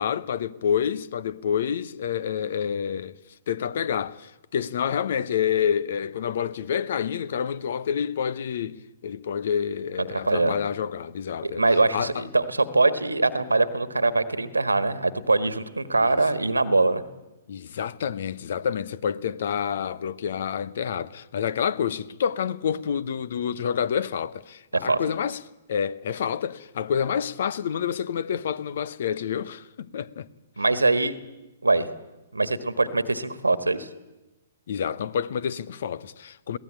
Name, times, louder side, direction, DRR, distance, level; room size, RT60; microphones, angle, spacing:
voice 1, 0.0-3.1 3.5-11.6 11.9-12.2 16.0-16.2 17.5-25.4 25.7-30.3 34.7-36.6, left 8 dB, 60° left, 0.9 m, -28 dB
voice 2, 10.1-10.5 11.4-17.0 24.7-25.0 30.6-31.1 31.6-31.9 32.3-33.9, right 3 dB, 90° right, 1.5 m, -23 dB
21.5 x 17.0 x 9.0 m
figure-of-eight pair, 120°, 0 cm